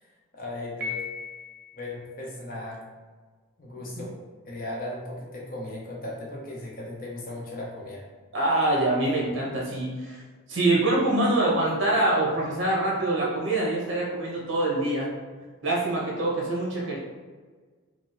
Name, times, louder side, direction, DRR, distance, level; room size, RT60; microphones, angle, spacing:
voice 1, 0.3-1.0 1.7-2.8 3.6-4.1 4.5-8.1, left 1 dB, 40° left, -3 dB, 0.8 m, -37 dB
Piano, 0.8-1.9, left 5 dB, 40° right, 0.6 m, -36 dB
voice 2, 8.3-10.2 10.5-15.1 15.6-17.0, right 2 dB, 60° right, -4 dB, 1.2 m, -25 dB
4.9 x 2.2 x 3.9 m, 1.4 s
head